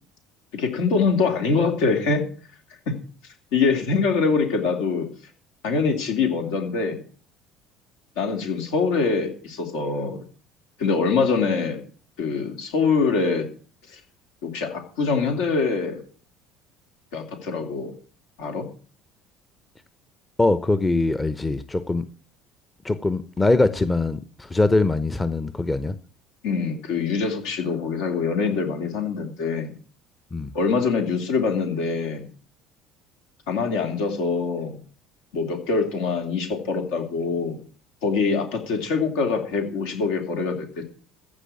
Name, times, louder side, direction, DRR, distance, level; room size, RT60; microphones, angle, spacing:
voice 1, 0.5-2.3 2.9-3.0 3.5-5.1 5.6-7.0 8.2-10.2 10.8-11.8 12.2-13.5 13.9-14.0 14.4-16.0 17.1-17.9 18.4-18.6 26.4-29.7 30.5-32.3 33.5-34.8 35.3-37.6 38.0-40.8, left 4 dB, 70° left, 2.9 m, -24 dB
voice 2, 20.4-22.1 22.8-25.9 30.3-30.5, left 2 dB, 20° left, 0.9 m, -22 dB
15.0 x 5.3 x 9.1 m
figure-of-eight pair, 60°, 0 cm